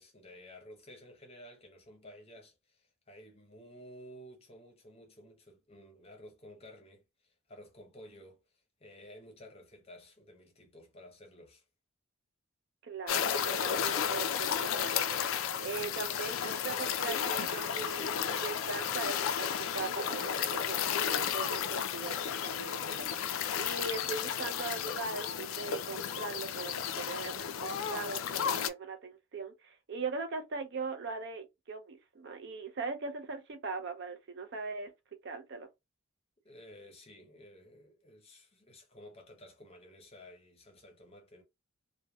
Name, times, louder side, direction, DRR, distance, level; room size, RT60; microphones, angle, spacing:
voice 1, 0.0-8.4 8.8-11.6 36.4-41.4, left 1 dB, 30° left, 0.7 m, -53 dB
voice 2, 12.8-15.0 15.6-34.9 35.2-35.7, right 4 dB, 50° right, 0.4 m, -40 dB
sound 1, 13.1-28.7, left 8 dB, 70° left, 0.3 m, -33 dB
3.1 x 2.1 x 2.2 m
head